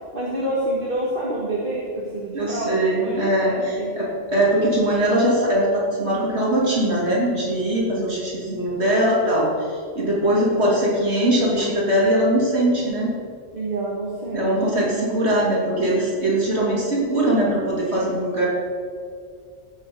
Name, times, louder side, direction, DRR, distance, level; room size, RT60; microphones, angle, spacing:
voice 1, 0.1-3.9 13.5-15.2, right 1 dB, 50° right, -5 dB, 1.9 m, -28 dB
voice 2, 2.3-13.2 14.3-18.5, right 1 dB, 65° right, -5 dB, 3.3 m, -21 dB
16.5 x 7.0 x 5.4 m, 2.2 s
omnidirectional pair, 1.2 m